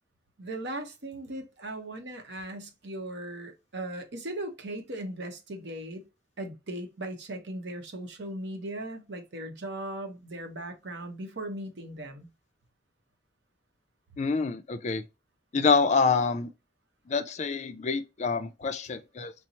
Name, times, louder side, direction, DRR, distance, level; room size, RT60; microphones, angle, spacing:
voice 1, 0.4-6.0 6.4-12.3, right 1 dB, 65° right, 0.9 m, -38 dB
voice 2, 14.2-15.0 15.5-16.5 17.1-19.3, left 4 dB, 40° left, 0.4 m, -26 dB
4.3 x 2.0 x 4.0 m
head